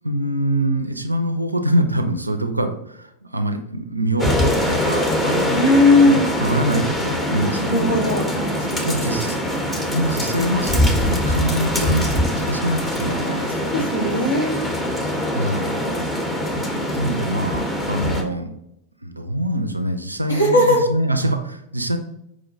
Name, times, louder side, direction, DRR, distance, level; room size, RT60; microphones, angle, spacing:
voice 1, 0.0-5.7 6.1-8.0 8.8-9.4 9.9-13.5 15.3-15.8 16.5-16.6 16.9-18.5 19.0-22.0, right 1 dB, 85° right, 7 dB, 0.4 m, -24 dB
sound 1, 4.2-18.2, left 1 dB, 10° left, 0.6 m, -23 dB
voice 2, 5.5-6.3 7.4-8.4 8.7-8.9 13.7-14.5 20.3-20.8, left 2 dB, 80° left, -2 dB, 1.0 m, -17 dB
4.7 x 2.2 x 2.7 m, 0.82 s
figure-of-eight pair, 90°, 0 cm